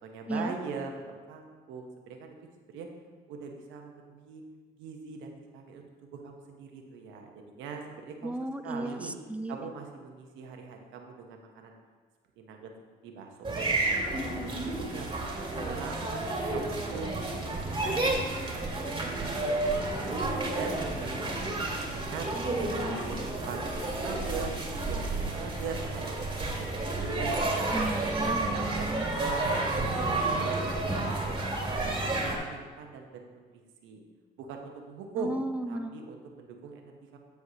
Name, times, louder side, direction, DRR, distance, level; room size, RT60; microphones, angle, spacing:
voice 1, 0.0-2.9 3.3-4.4 4.8-8.4 8.6-9.1 9.5-11.7 12.4-12.7 13.0-14.3 14.8-16.2 16.5-20.2 20.6-22.3 22.9-23.2 23.5-24.5 24.8-27.7 28.2-28.9 29.1-31.8 32.2-34.0 34.4-35.3 35.7-37.2, right 5 dB, 90° right, 3 dB, 0.9 m, -42 dB
voice 2, 8.2-9.6 27.7-29.2 35.2-36.0, right 1 dB, 5° right, 9 dB, 0.5 m, -34 dB
sound 1, 13.4-32.4, right 2 dB, 25° right, 1.7 m, -31 dB
13.0 x 4.7 x 2.8 m, 1.4 s
supercardioid pair, 75°, 19 cm